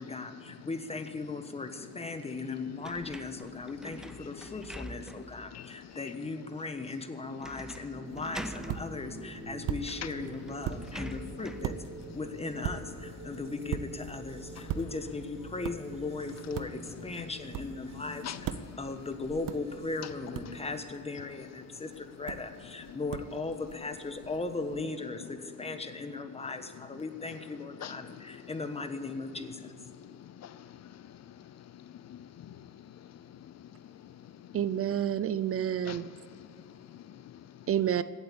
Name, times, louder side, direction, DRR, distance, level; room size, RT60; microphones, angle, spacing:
voice 1, 0.0-11.8 12.1-29.7, left 3 dB, 20° left, 8 dB, 1.2 m, -38 dB
sound 1, 2.8-5.4 5.9-6.0 7.4-7.9 8.2-8.8 9.8-9.9 10.2-11.7, equal, ahead, 0.6 m, -44 dB
voice 2, 5.5-6.1 18.2-18.4 18.7-18.8 27.8-28.1 29.9-34.6 35.8-37.7, left 10 dB, 55° left, 15 dB, 0.5 m, -47 dB
sound 2, 7.9-20.2, right 2 dB, 20° right, 2.5 m, -47 dB
sound 3, 8.1-24.8, right 9 dB, 80° right, 0.7 m, -42 dB
voice 3, 34.5-36.1 37.7-38.0, right 10 dB, 45° right, 15 dB, 0.4 m, -29 dB
17.0 x 8.0 x 8.6 m, 2.5 s
cardioid pair, 125°, 32 cm